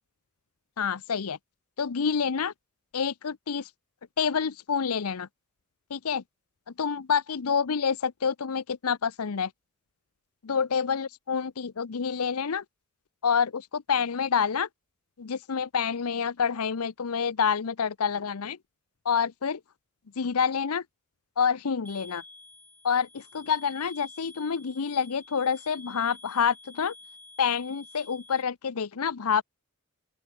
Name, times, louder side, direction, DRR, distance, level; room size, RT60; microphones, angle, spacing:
voice 1, 0.8-1.4 1.8-2.5 2.9-3.6 4.2-5.3 5.9-6.2 6.8-9.5 10.5-12.6 13.2-14.7 15.2-18.6 19.1-19.6 20.2-20.8 21.4-22.2 22.8-23.1 23.3-26.9 27.4-29.4, left 6 dB, 85° left, 0.7 m, -27 dB
sound 1, 21.8-28.4, left 2 dB, 10° left, 6.4 m, -50 dB
open air
head